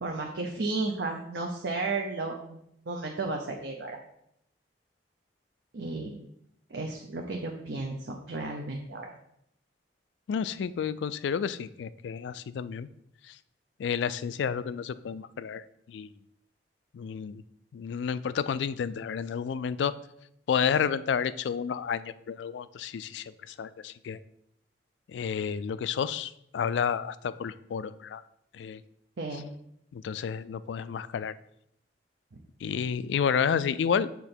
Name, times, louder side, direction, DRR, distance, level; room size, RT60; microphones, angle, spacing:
voice 1, 0.0-2.6 2.9-4.0 5.7-6.2 6.7-9.1 29.2-29.5, right 3 dB, 80° right, 2 dB, 0.7 m, -33 dB
voice 2, 10.3-12.9 13.3-13.4 13.8-15.6 15.9-16.1 16.9-17.4 17.7-19.9 20.5-24.2 25.1-28.2 28.5-28.8 29.9-31.3 32.6-34.1, left 7 dB, 85° left, 15 dB, 0.3 m, -30 dB
7.0 x 3.8 x 4.3 m, 0.76 s
head